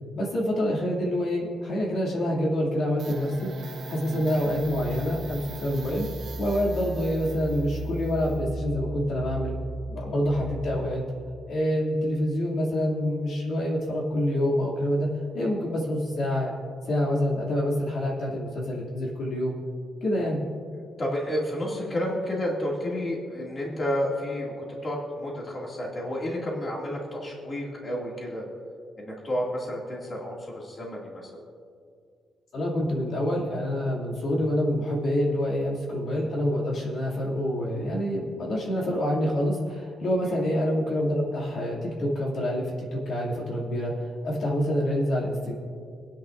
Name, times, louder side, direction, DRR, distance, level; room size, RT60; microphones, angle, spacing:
voice 1, 0.1-3.5 3.9-6.1 6.4-9.5 9.9-11.0 11.5-15.1 15.3-16.6 16.9-19.6 20.0-20.4 32.5-43.9 44.2-45.5, equal, 55° left, -3 dB, 2.5 m, -27 dB
sound 1, 3.0-11.4, right 2 dB, 50° right, 0.9 m, -36 dB
voice 2, 10.0-10.5 21.0-28.4 29.0-31.4 40.0-40.4, equal, 30° left, -3 dB, 2.3 m, -31 dB
25.5 x 10.0 x 2.5 m, 2.3 s
cardioid pair, 160°, 0 cm